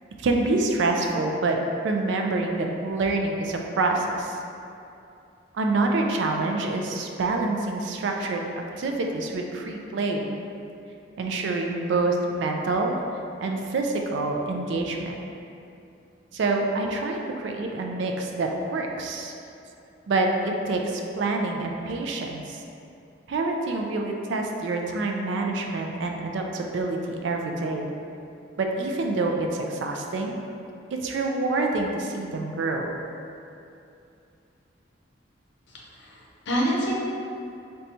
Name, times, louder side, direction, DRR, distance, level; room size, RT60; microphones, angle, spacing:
voice 1, 0.2-1.6 1.8-4.4 5.5-8.4 8.8-10.3 11.2-13.0 13.4-15.2 16.3-19.3 20.1-22.6 23.3-27.9 28.6-30.4 30.9-32.9, right 2 dB, 70° right, 2 dB, 0.3 m, -26 dB
voice 2, 35.7-37.0, equal, 65° left, -4 dB, 0.6 m, -27 dB
4.2 x 2.2 x 2.6 m, 2.6 s
head